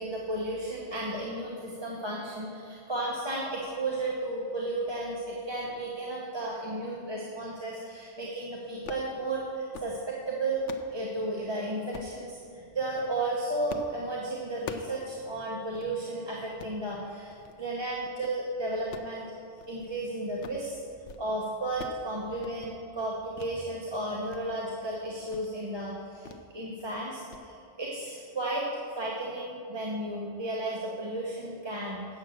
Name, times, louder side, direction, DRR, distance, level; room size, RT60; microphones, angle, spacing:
voice 1, 0.0-10.6 10.9-19.2 19.7-20.8 21.2-26.3 26.5-28.6 28.9-32.1, right 2 dB, 25° right, -5 dB, 1.0 m, -33 dB
sound 1, 8.7-9.1 9.5-10.0 10.4-10.9 11.9-12.2 12.8-13.1 13.7-14.0 14.3-15.0 15.3-15.4 15.7-15.9 16.4-16.8 17.3-17.6 17.9-18.4 18.8-20.0 20.3-20.7 20.9-21.3 21.5-22.1 22.3-22.7 23.4-23.5 23.9-24.4 24.8-24.9 25.3-25.5 26.3-26.5 26.8-27.0 27.3-27.5, left 7 dB, 85° left, 0.9 m, -44 dB
8.3 x 7.4 x 6.5 m, 2.5 s
omnidirectional pair, 1.2 m